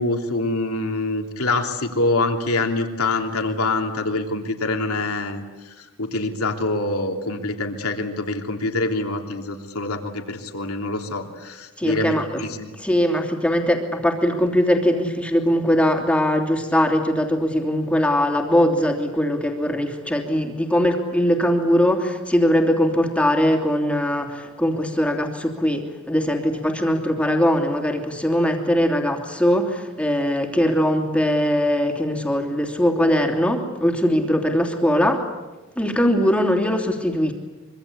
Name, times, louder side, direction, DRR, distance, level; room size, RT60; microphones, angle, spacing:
voice 1, 0.0-12.7, left 2 dB, 80° left, 3 dB, 3.2 m, -25 dB
voice 2, 11.8-12.4 12.8-35.2 35.8-37.3, equal, 5° left, 2 dB, 3.0 m, -21 dB
25.0 x 25.0 x 8.6 m, 1.2 s
head